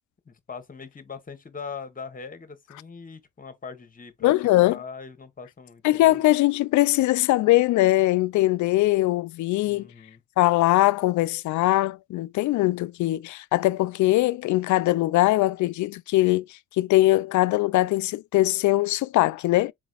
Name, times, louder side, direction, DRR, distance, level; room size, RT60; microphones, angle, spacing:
voice 1, 0.2-4.3 4.6-6.2 9.7-10.2, left 5 dB, 30° left, 1.2 m, -40 dB
voice 2, 4.2-4.8 5.8-9.9 10.4-19.7, left 17 dB, 75° left, 0.4 m, -21 dB
4.0 x 3.7 x 2.4 m
cardioid pair, 90°, 30 cm